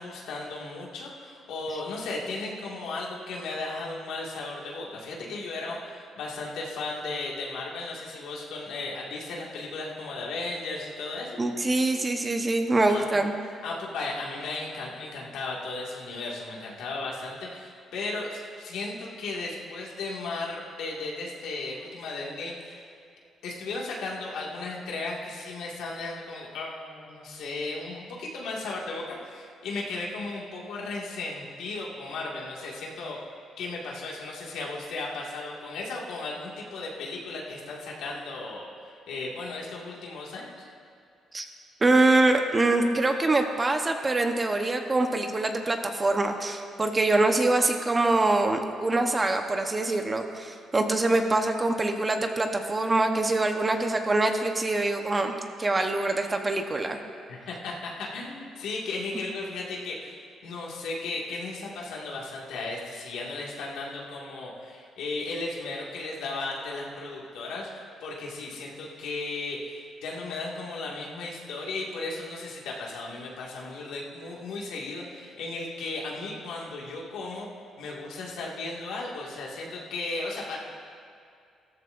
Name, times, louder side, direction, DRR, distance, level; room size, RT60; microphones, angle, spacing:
voice 1, 0.0-11.4 12.9-13.0 13.6-22.9 23.4-33.2 33.6-40.7 57.3-60.2 60.4-77.5 77.8-80.6, left 3 dB, 85° left, -3 dB, 2.1 m, -35 dB
voice 2, 11.4-13.3 41.3-41.5 41.8-57.0, right 2 dB, 25° right, 5 dB, 1.0 m, -24 dB
15.5 x 13.5 x 2.6 m, 2.4 s
cardioid pair, 90°, 0 cm